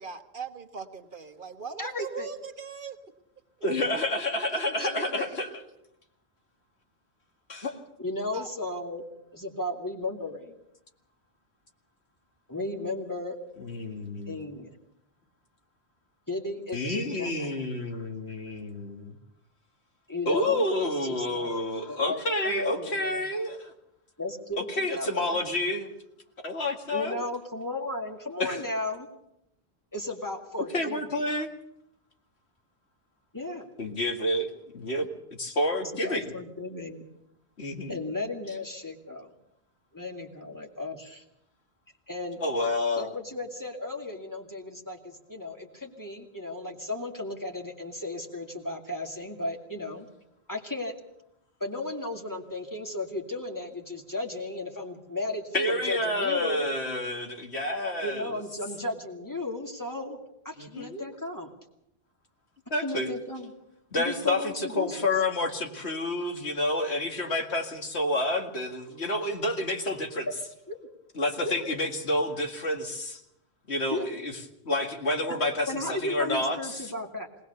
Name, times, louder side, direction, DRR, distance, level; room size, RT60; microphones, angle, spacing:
voice 1, 0.0-3.0 4.5-5.4 8.3-8.5 40.5-40.7, right 5 dB, 55° right, 7 dB, 1.4 m, -40 dB
voice 2, 1.8-2.3 4.8-5.3 8.0-9.0 9.3-10.5 12.5-13.4 14.3-14.8 16.3-17.5 20.1-21.5 21.9-23.2 24.2-25.4 26.9-29.1 29.9-31.2 33.3-33.7 35.9-37.0 37.9-39.3 39.9-41.2 42.1-42.4 43.0-50.1 50.5-50.9 51.6-56.7 58.0-60.2 60.4-61.5 62.8-63.5 64.0-65.0 70.7-70.8 71.4-71.5 73.9-74.2 75.7-77.3, left 2 dB, 20° left, 2 dB, 2.4 m, -35 dB
voice 3, 3.6-5.5 7.5-7.8 13.6-14.4 16.7-19.1 20.3-23.7 24.7-25.9 26.4-27.2 28.4-28.6 30.7-31.5 33.8-35.1 35.4-36.3 37.6-38.0 42.4-43.2 55.5-58.3 60.6-61.0 62.7-63.1 63.9-70.3 71.2-73.2 73.7-74.3 74.6-76.9, left 1 dB, 85° left, 3 dB, 2.3 m, -29 dB
20.0 x 19.5 x 6.8 m, 0.81 s
omnidirectional pair, 1.1 m